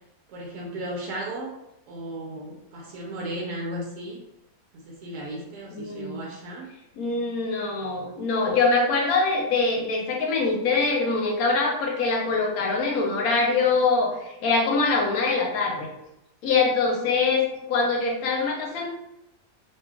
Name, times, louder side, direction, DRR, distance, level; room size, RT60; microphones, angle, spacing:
voice 1, 0.3-1.5 1.9-4.2 4.7-6.7, right 1 dB, 80° right, -3 dB, 1.2 m, -35 dB
voice 2, 5.7-6.3 7.0-15.9 16.4-18.9, left 4 dB, 70° left, 0 dB, 1.0 m, -24 dB
2.7 x 2.5 x 2.3 m, 0.87 s
omnidirectional pair, 1.8 m